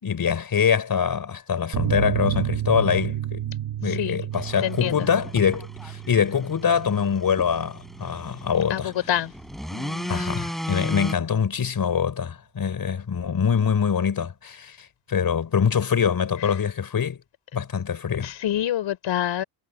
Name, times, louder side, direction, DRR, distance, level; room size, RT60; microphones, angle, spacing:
voice 1, 0.0-3.4 3.8-8.9 10.1-17.2 17.5-18.3, left 7 dB, 50° left, 5.0 m, -24 dB
sound 1, 1.7-8.8 9.1-9.2 9.5-9.6, right 11 dB, 60° right, 2.0 m, -31 dB
voice 2, 3.8-4.2 4.6-5.1 8.7-9.3 9.7-10.2 18.2-19.4, left 11 dB, 70° left, 4.3 m, -27 dB
sound 2, 4.3-11.1, equal, ahead, 6.2 m, -36 dB
supercardioid pair, 70°, 45 cm